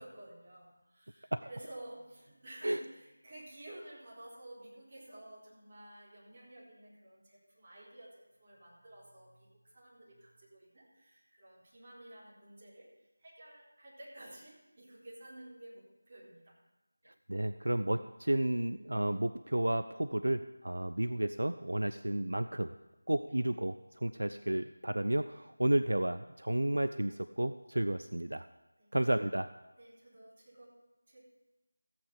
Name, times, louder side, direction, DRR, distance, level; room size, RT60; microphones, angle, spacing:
voice 1, 0.0-16.6 28.8-29.0 29.8-31.2, right 1 dB, 30° right, -6 dB, 3.9 m, -52 dB
voice 2, 17.1-22.7 23.1-28.5 28.9-29.5, right 1 dB, 65° right, 10 dB, 0.5 m, -32 dB
14.5 x 8.6 x 5.1 m, 1.0 s
figure-of-eight pair, 165°, 0 cm